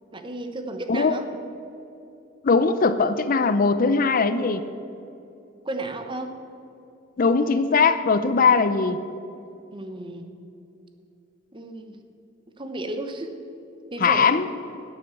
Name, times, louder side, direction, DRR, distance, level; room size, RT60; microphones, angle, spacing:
voice 1, 0.1-1.2 5.6-6.4 9.7-10.3 11.5-12.0 12.6-13.3 13.9-14.4, right 2 dB, 25° right, 6 dB, 1.0 m, -33 dB
voice 2, 2.4-4.6 7.2-9.0 14.0-14.5, left 4 dB, 45° left, 12 dB, 0.5 m, -20 dB
11.5 x 7.9 x 8.3 m, 2.7 s
head